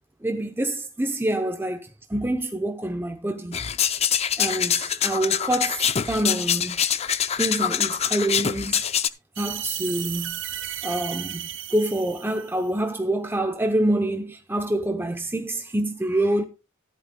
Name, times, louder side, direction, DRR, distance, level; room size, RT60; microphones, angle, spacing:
voice 1, 0.2-3.6 4.4-6.8 7.4-8.8 9.4-10.4 10.8-16.4, right 1 dB, 10° right, 0.7 m, -26 dB
sound 1, 3.5-9.1, left 8 dB, 35° left, 0.5 m, -24 dB
sound 2, 9.4-12.7, right 12 dB, 80° right, 0.8 m, -34 dB
14.5 x 11.0 x 2.2 m
head